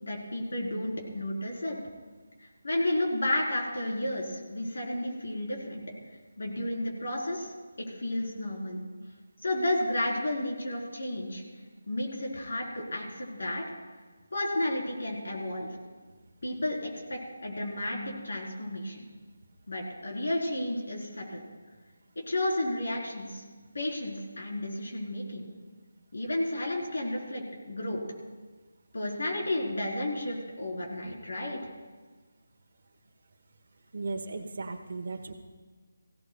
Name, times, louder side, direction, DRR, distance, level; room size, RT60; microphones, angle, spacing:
voice 1, 0.0-1.8 2.6-5.8 6.4-7.5 7.8-8.8 9.4-11.4 11.9-13.6 14.3-15.7 16.4-19.0 19.7-21.4 22.3-23.4 23.7-25.5 26.1-28.0 28.9-31.7, left 1 dB, 75° left, -1 dB, 3.9 m, -32 dB
voice 2, 33.9-35.3, right 3 dB, 55° right, 3 dB, 1.1 m, -36 dB
20.0 x 16.5 x 2.3 m, 1.4 s
figure-of-eight pair, 170°, 0 cm